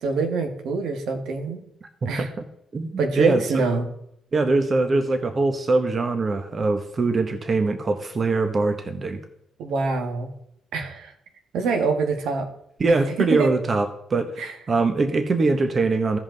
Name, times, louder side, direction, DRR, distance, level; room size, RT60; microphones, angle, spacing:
voice 1, 0.0-1.6 2.0-2.3 3.0-3.9 9.6-10.3 10.7-11.1 11.5-12.5 13.2-13.5 14.4-14.5, right 4 dB, 80° right, 5 dB, 1.6 m, -25 dB
voice 2, 2.7-3.6 4.3-9.2 12.8-16.2, right 3 dB, 35° right, 7 dB, 1.0 m, -22 dB
16.0 x 5.4 x 3.9 m, 0.76 s
cardioid pair, 90°, 0 cm